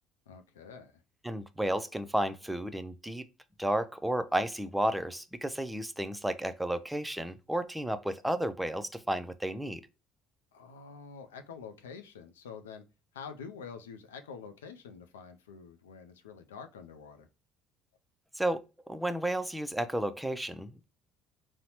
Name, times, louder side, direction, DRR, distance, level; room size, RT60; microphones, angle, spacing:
voice 1, 0.3-1.0 10.5-12.8 13.1-17.3, left 6 dB, 90° left, 0.3 m, -47 dB
voice 2, 1.2-3.2 3.6-9.8 18.4-18.6 18.9-20.9, right 1 dB, 5° right, 0.4 m, -32 dB
3.9 x 2.0 x 2.8 m
hypercardioid pair, 65°, 0 cm